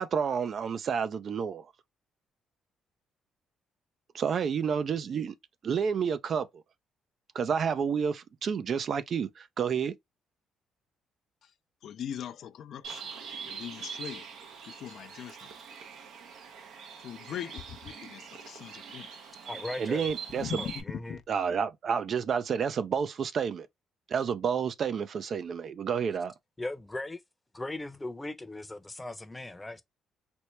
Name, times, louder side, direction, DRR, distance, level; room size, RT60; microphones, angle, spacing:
voice 1, 0.0-1.7 4.1-5.4 5.6-6.5 7.3-9.9 19.8-20.6 21.3-23.7 24.1-26.3, right 6 dB, 55° right, 0.4 m, -30 dB
voice 2, 11.8-13.1 13.5-14.3 14.6-15.5 17.0-19.1 20.3-20.7 21.1-21.2, left 9 dB, 70° left, 0.4 m, -40 dB
Bird, 12.8-20.8, right 6 dB, 75° right, 0.8 m, -43 dB
voice 3, 19.4-20.1 20.6-21.2 26.6-27.2 27.5-29.8, left 2 dB, 15° left, 0.7 m, -38 dB
4.3 x 2.1 x 3.2 m
supercardioid pair, 75°, 0 cm